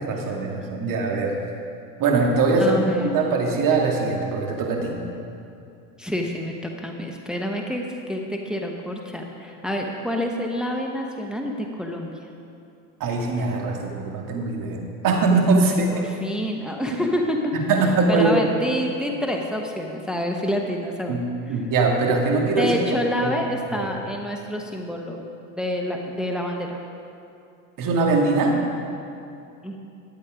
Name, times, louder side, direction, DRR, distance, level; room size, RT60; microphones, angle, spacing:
voice 1, 0.0-1.3 2.0-5.0 13.0-15.9 17.5-18.4 21.1-21.2 21.5-22.8 23.2-23.3 23.8-23.9 27.8-28.6, right 3 dB, 45° right, 0 dB, 2.1 m, -22 dB
voice 2, 2.6-3.1 6.0-12.2 15.6-17.6 18.1-21.2 21.5-21.6 22.6-25.3 25.5-26.8 29.6-29.8, equal, ahead, 1 dB, 0.9 m, -27 dB
11.5 x 8.3 x 5.0 m, 2.6 s
supercardioid pair, 100°, 45 cm